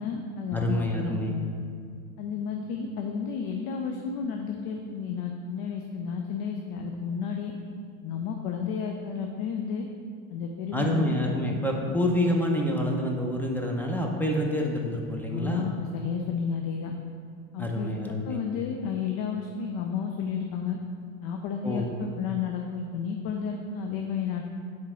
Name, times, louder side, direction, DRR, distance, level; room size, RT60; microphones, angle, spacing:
voice 1, 0.0-1.5 2.2-7.5 8.0-9.9 10.3-11.2 15.3-16.9 17.5-20.8 21.2-24.4, left 6 dB, 55° left, 3 dB, 0.7 m, -32 dB
voice 2, 0.5-1.3 10.7-15.7 17.6-18.4 21.6-21.8, equal, 5° left, 0 dB, 0.7 m, -27 dB
6.0 x 4.6 x 4.4 m, 2.3 s
supercardioid pair, 110°, 42 cm